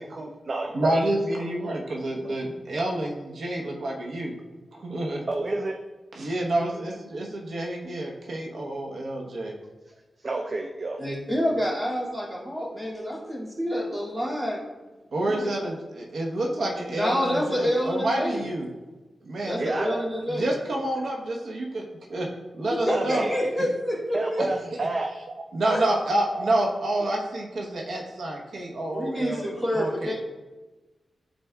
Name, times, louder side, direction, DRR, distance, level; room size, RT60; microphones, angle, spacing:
voice 1, 0.1-1.0 1.4-1.5 2.2-2.3 5.3-5.8 10.2-11.0 19.6-20.1 22.9-23.5 24.1-25.3 26.1-26.5, right 2 dB, 40° right, 3 dB, 0.5 m, -30 dB
voice 2, 0.7-4.3 4.7-5.3 6.1-9.5 15.1-18.7 19.3-19.7 20.3-22.3 22.6-23.2 25.5-29.5 29.7-30.1, right 1 dB, 75° right, -1 dB, 1.0 m, -28 dB
voice 3, 11.0-14.6 15.2-15.5 16.9-18.4 19.4-20.5 22.7-24.5 25.7-25.9 28.9-30.1, equal, 20° right, -6 dB, 2.3 m, -28 dB
12.5 x 4.2 x 2.3 m, 1.2 s
wide cardioid pair, 120°, 0 cm